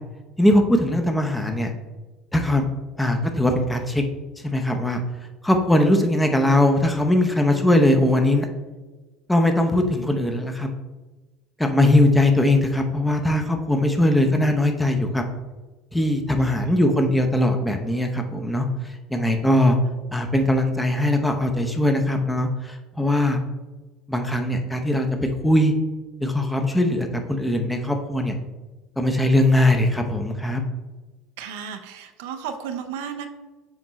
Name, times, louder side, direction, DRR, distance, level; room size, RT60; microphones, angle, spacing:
voice 1, 0.4-1.7 2.3-2.6 3.0-4.0 4.4-5.0 5.4-8.5 9.3-10.7 11.6-15.2 15.9-18.7 19.1-19.8 20.1-23.4 24.1-25.1 25.4-25.7 26.2-28.4 29.0-30.6, left 1 dB, 10° left, 5 dB, 0.8 m, -20 dB
voice 2, 31.4-33.3, right 7 dB, 65° right, 7 dB, 0.5 m, -33 dB
7.1 x 4.4 x 3.1 m, 1.2 s
figure-of-eight pair, 65°, 0 cm